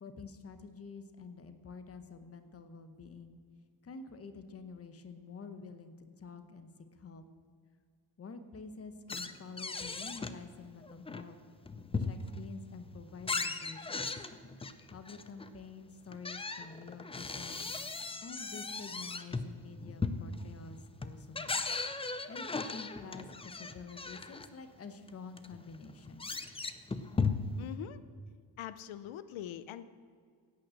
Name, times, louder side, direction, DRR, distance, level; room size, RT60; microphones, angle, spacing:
voice 1, 0.0-3.4 3.8-6.7 7.0-7.2 8.2-11.4 12.0-14.0 14.9-17.7 18.2-21.6 22.3-26.3, left 4 dB, 30° left, 9 dB, 1.0 m, -48 dB
sound 1, 9.1-10.4 10.8-12.5 12.9-15.5 16.1-24.5 25.1-25.2 25.4-27.7, left 4 dB, 15° left, 0.4 m, -37 dB
voice 2, 27.6-28.0 28.6-29.8, left 11 dB, 85° left, 14 dB, 0.7 m, -43 dB
16.5 x 9.0 x 6.5 m, 2.1 s
cardioid pair, 165°, 47 cm